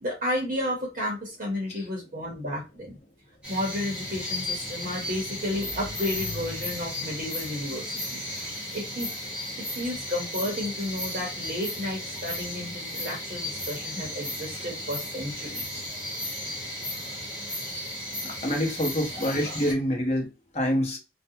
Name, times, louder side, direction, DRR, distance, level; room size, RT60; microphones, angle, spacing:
voice 1, 0.0-3.0 3.5-8.2 8.7-9.1 9.6-15.8, left 1 dB, 40° right, -2 dB, 0.8 m, -32 dB
sound 1, 3.4-19.7, left 1 dB, 5° right, 1.0 m, -35 dB
voice 2, 18.2-21.0, equal, 35° left, 1 dB, 0.9 m, -27 dB
2.4 x 2.2 x 2.7 m, 0.28 s
head